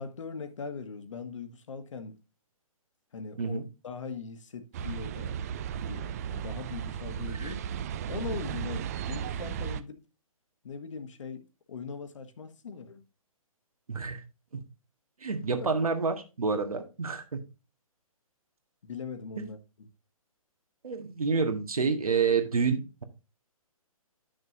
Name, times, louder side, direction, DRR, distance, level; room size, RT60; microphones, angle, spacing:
voice 1, 0.0-2.2 3.1-5.3 5.8-7.6 8.1-10.0 10.6-13.0 15.6-15.7 18.8-19.9, left 5 dB, 55° left, 1.4 m, -40 dB
sound 1, 4.7-9.8, right 8 dB, 25° right, 0.4 m, -35 dB
voice 2, 13.9-14.2 14.5-14.6 15.2-17.4 19.4-19.5 20.8-23.0, right 5 dB, 75° right, 1.8 m, -28 dB
10.0 x 6.3 x 2.6 m
figure-of-eight pair, 135°, 19 cm